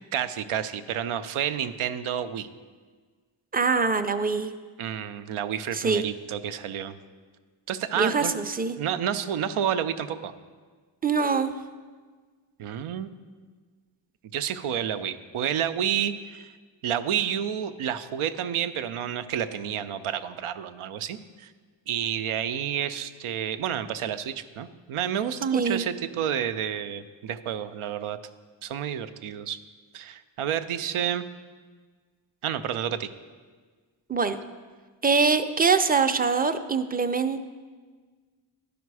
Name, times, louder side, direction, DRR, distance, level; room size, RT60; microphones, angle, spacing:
voice 1, 0.1-2.5 4.8-7.0 7.7-8.3 8.8-10.3 12.6-13.1 14.3-16.5 16.8-21.5 21.9-28.2 28.6-29.6 29.9-31.2 32.4-33.1, right 9 dB, 85° right, 11 dB, 0.6 m, -30 dB
voice 2, 3.5-4.5 5.7-6.1 8.0-8.8 11.0-11.5 25.5-25.8 34.1-34.4 35.0-37.4, right 5 dB, 20° right, 9 dB, 0.4 m, -24 dB
11.0 x 5.1 x 4.7 m, 1.5 s
cardioid pair, 60°, 49 cm